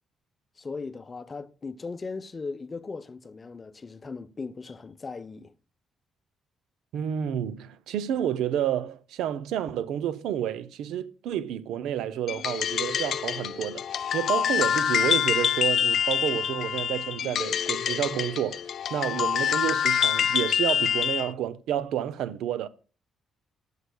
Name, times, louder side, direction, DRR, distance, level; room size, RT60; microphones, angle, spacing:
voice 1, 0.6-5.5, left 4 dB, 30° left, 0.6 m, -38 dB
voice 2, 6.9-13.9 14.1-18.6 18.9-22.7, right 10 dB, 85° right, 0.5 m, -30 dB
sound 1, 12.3-21.3, left 8 dB, 65° left, 0.3 m, -26 dB
13.0 x 6.5 x 2.2 m
cardioid pair, 90°, 0 cm